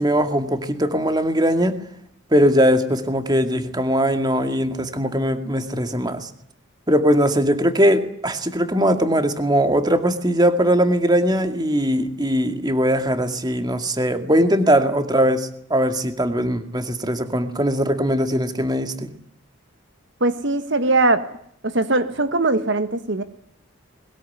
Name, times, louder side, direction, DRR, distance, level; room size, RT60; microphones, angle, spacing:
voice 1, 0.0-1.8 2.3-6.3 6.9-19.1, equal, 20° right, 8 dB, 2.2 m, -20 dB
voice 2, 20.2-21.3 21.6-23.2, right 2 dB, 60° right, 10 dB, 1.5 m, -20 dB
22.0 x 20.0 x 9.7 m, 0.69 s
head